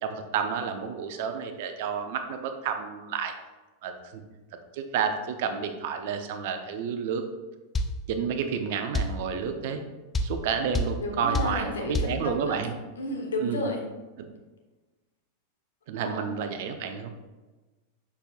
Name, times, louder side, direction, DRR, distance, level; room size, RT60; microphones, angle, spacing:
voice 1, 0.0-3.3 3.8-4.2 4.7-7.2 8.1-9.9 10.2-12.7 13.4-13.7 15.9-17.1, right 6 dB, 50° right, 7 dB, 0.7 m, -30 dB
sound 1, 7.7-8.0 8.9-9.2 10.1-10.4 10.7-11.0 11.3-11.6 11.9-12.2, left 1 dB, 15° left, 0.5 m, -26 dB
voice 2, 11.0-12.5 13.0-13.9 16.0-16.3, left 1 dB, 65° left, 1 dB, 1.2 m, -32 dB
6.7 x 5.6 x 2.5 m, 1.2 s
figure-of-eight pair, 90°, 0 cm